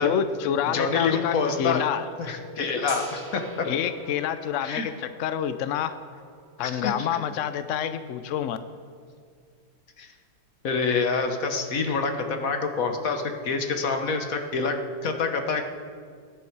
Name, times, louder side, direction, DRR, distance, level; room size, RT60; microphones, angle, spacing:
voice 1, 0.0-2.0 3.6-5.9 6.6-8.6, left 9 dB, 80° left, 11 dB, 0.6 m, -27 dB
voice 2, 0.7-1.8 2.2-3.7 4.6-4.9 6.6-7.1 10.0-10.1 10.6-15.7, left 4 dB, 50° left, 5 dB, 1.5 m, -27 dB
Telephone, 2.1-4.1, left 1 dB, 20° left, 2.5 m, -43 dB
Gong, 2.9-8.8, right 2 dB, 65° right, 3.5 m, -47 dB
21.0 x 10.0 x 4.7 m, 2.1 s
omnidirectional pair, 2.1 m